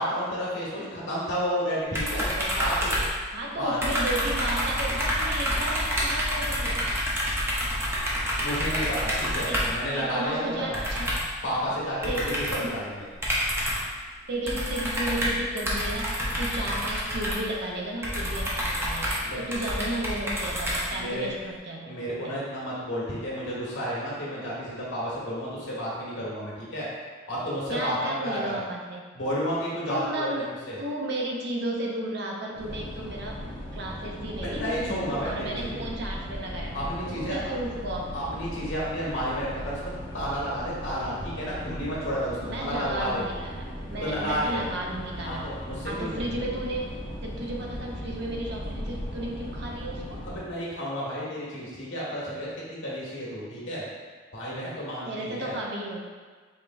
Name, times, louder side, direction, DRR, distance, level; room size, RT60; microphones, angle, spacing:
voice 1, 0.0-3.0 3.6-3.8 8.4-10.4 10.7-10.8 11.4-13.1 19.2-19.4 20.9-21.3 21.8-26.9 27.3-28.0 28.2-28.5 29.1-30.8 34.4-35.8 36.7-37.5 38.1-39.8 40.1-43.3 44.0-44.6 45.2-46.5 50.2-53.8 54.3-55.5, equal, 75° left, -7 dB, 1.4 m, -31 dB
sound 1, 1.9-3.5 3.8-9.8 10.7-11.4 12.0-12.7 13.2-14.0 14.5-21.3, equal, 15° right, 0.7 m, -28 dB
voice 2, 3.3-6.9 9.4-9.7 9.9-11.1 12.1-12.7 14.3-22.4 27.7-29.1 29.9-30.5 30.8-34.6 35.1-36.8 37.1-38.3 42.4-45.5 45.8-46.9 47.2-50.2 55.0-56.0, right 1 dB, 60° right, -2 dB, 0.6 m, -34 dB
sound 2, 32.6-50.4, equal, 25° left, 0.8 m, -38 dB
4.9 x 3.3 x 2.5 m, 1.5 s
head